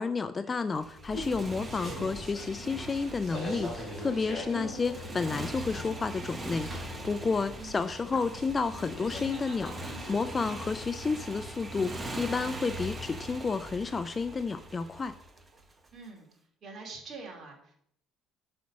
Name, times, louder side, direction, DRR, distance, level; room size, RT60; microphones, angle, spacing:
voice 1, 0.0-15.1, left 4 dB, 25° left, 11 dB, 0.4 m, -31 dB
Motorcycle, 0.7-15.9, right 1 dB, 15° right, 1.0 m, -42 dB
sound 1, 1.0-10.5, equal, 5° left, 3.7 m, -42 dB
voice 2, 15.9-16.3 16.6-17.7, right 4 dB, 40° right, 0 dB, 2.7 m, -45 dB
5.8 x 5.3 x 6.2 m, 0.68 s
cardioid pair, 115°, 0 cm